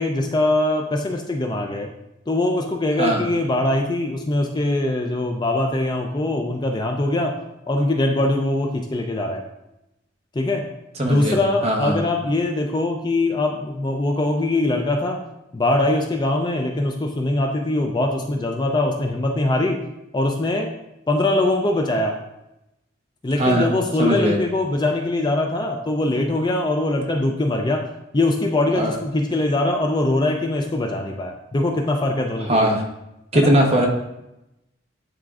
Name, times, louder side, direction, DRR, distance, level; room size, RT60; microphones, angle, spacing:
voice 1, 0.0-1.9 2.3-7.3 7.7-9.4 10.3-10.6 11.0-15.2 15.5-19.8 20.1-20.7 21.1-22.1 23.2-27.9 28.1-32.7 33.3-33.5, left 2 dB, 20° left, 2 dB, 0.4 m, -22 dB
voice 2, 11.0-11.4 11.6-12.0 23.4-23.7 24.0-24.4 28.7-28.9 32.5-32.8 33.3-33.9, right 1 dB, 30° right, 1 dB, 0.9 m, -19 dB
10.5 x 3.6 x 2.4 m, 0.90 s
head